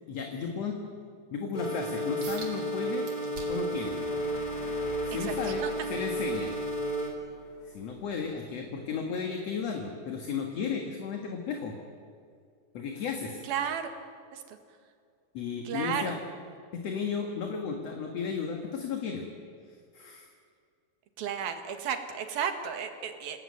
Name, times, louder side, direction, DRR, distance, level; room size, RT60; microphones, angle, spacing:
voice 1, 0.1-0.8 1.3-3.1 3.5-4.0 5.1-5.6 5.9-6.5 7.6-11.8 12.7-13.4 15.3-16.2 16.7-19.3 19.9-20.3, left 6 dB, 50° left, 3 dB, 2.5 m, -34 dB
sound 1, 1.5-7.1, right 1 dB, 15° left, 3.2 m, -32 dB
sound 2, 2.2-2.5 3.0-3.7 4.2-6.8 7.3-7.5 8.1-8.2, right 4 dB, 60° right, 5.2 m, -47 dB
sound 3, 3.8-8.9, left 6 dB, 90° left, 3.8 m, -47 dB
voice 2, 5.2-5.7 13.4-13.9 14.3-14.6 15.7-16.1 21.2-23.4, right 8 dB, 85° right, 6 dB, 3.6 m, -33 dB
27.5 x 17.5 x 9.7 m, 2.2 s
omnidirectional pair, 4.1 m